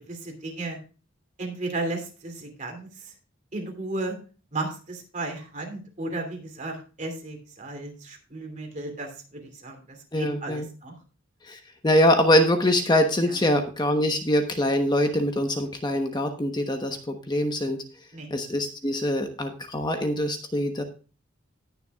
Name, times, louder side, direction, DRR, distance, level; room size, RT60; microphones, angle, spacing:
voice 1, 0.1-0.8 1.4-3.1 3.5-4.2 4.5-10.9 13.2-13.4 18.1-18.3, right 2 dB, 40° right, 3 dB, 2.8 m, -34 dB
voice 2, 10.1-10.7 11.5-17.8 18.3-20.8, left 1 dB, 20° left, 5 dB, 1.0 m, -24 dB
19.0 x 6.9 x 2.3 m, 0.35 s
head